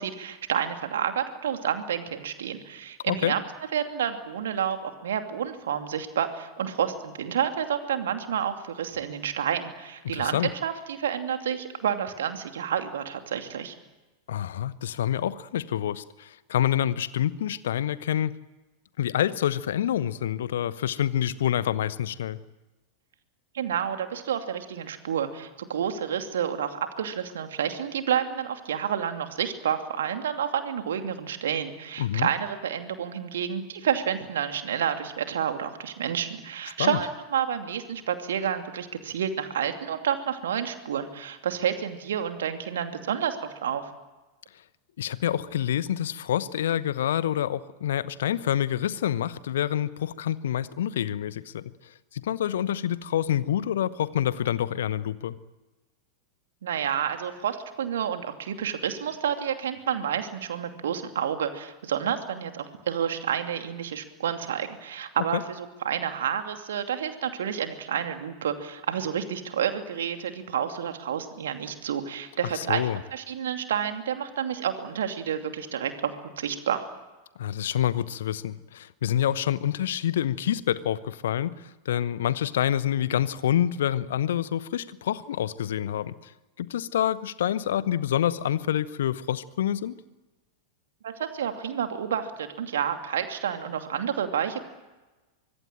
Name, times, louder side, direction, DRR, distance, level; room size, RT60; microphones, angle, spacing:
voice 1, 0.0-3.4 3.7-13.7 23.5-43.9 56.6-76.1 76.4-76.8 91.0-94.6, right 8 dB, 60° right, 7 dB, 2.7 m, -29 dB
voice 2, 10.1-10.5 14.3-18.3 19.0-22.4 32.0-32.3 36.8-37.0 45.0-51.7 52.1-55.4 65.3-65.4 72.5-73.0 77.4-86.3 86.6-90.0, left 10 dB, 60° left, 17 dB, 0.9 m, -27 dB
25.0 x 22.5 x 9.0 m, 1.1 s
figure-of-eight pair, 90°, 0 cm